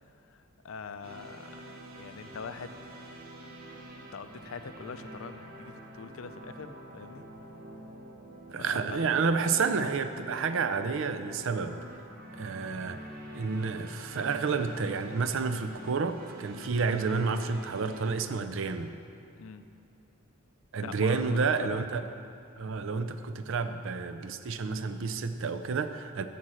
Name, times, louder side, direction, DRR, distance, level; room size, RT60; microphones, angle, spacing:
voice 1, 0.2-1.6 1.9-2.9 4.1-7.2 8.6-9.0 19.4-19.7 20.8-21.8, left 5 dB, 65° left, 10 dB, 0.5 m, -43 dB
sound 1, 1.0-18.2, right 1 dB, 45° right, 0.9 m, -47 dB
voice 2, 8.5-11.8 12.4-13.1 13.3-19.0 20.7-22.0 22.6-26.3, right 4 dB, 60° right, 10 dB, 0.5 m, -30 dB
11.0 x 4.2 x 7.6 m, 2.6 s
head